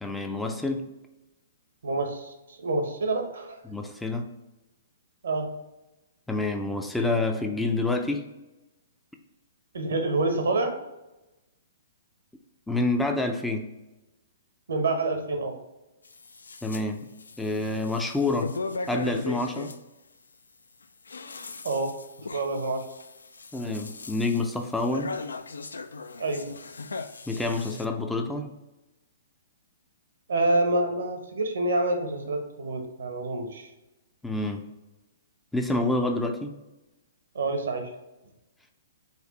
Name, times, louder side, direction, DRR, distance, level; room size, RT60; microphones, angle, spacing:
voice 1, 0.0-0.9 3.7-4.3 6.3-8.2 12.7-13.7 16.6-17.1 17.4-18.5 18.9-19.7 23.5-25.1 27.3-28.5 34.2-34.6 35.5-36.5, left 2 dB, 5° left, 4 dB, 0.4 m, -27 dB
voice 2, 1.8-3.6 5.2-5.5 9.7-10.7 14.7-15.6 21.6-21.9 22.3-22.8 26.2-26.5 30.3-33.7 37.3-37.9, right 2 dB, 75° right, 5 dB, 0.8 m, -27 dB
sound 1, 16.0-16.8 17.2-19.8 20.8-27.9, left 4 dB, 85° left, 0.3 m, -38 dB
4.2 x 2.6 x 3.9 m, 1.0 s
hypercardioid pair, 130°, 0 cm